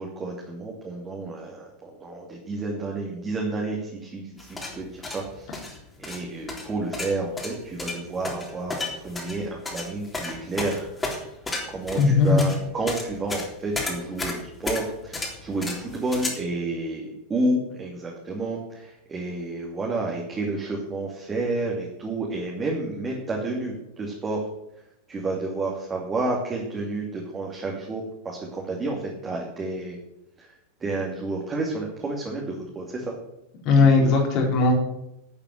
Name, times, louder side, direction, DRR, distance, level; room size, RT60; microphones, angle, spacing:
voice 1, 0.0-5.7 6.0-11.2 11.7-24.5 25.1-30.0 30.4-30.5 30.8-33.1 34.0-34.1, right 2 dB, 20° right, -1 dB, 2.7 m, -30 dB
sound 1, 4.4-16.3, left 2 dB, 15° left, 3.6 m, -33 dB
voice 2, 11.9-12.4 33.6-34.7, left 4 dB, 40° left, 0 dB, 4.3 m, -18 dB
11.5 x 8.8 x 7.9 m, 0.84 s
figure-of-eight pair, 90°, 0 cm